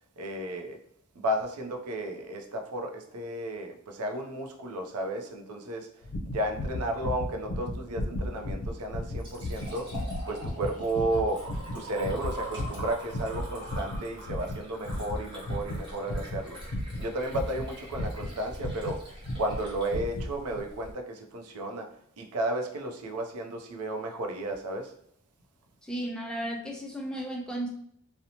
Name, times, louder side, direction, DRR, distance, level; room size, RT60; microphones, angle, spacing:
voice 1, 0.2-0.8 1.2-5.9 6.3-9.9 10.3-11.5 11.7-16.6 17.0-19.0 19.4-21.9 22.2-24.9, right 1 dB, 80° right, 3 dB, 0.5 m, -33 dB
sound 1, 6.0-19.0 19.2-19.6 19.9-20.3 20.5-20.6, left 1 dB, 90° left, 0.5 m, -35 dB
Liquid, 8.9-20.9, equal, 20° right, 0.9 m, -44 dB
voice 2, 25.9-27.7, right 1 dB, 5° left, 0 dB, 0.3 m, -34 dB
2.8 x 2.0 x 2.7 m, 0.69 s
head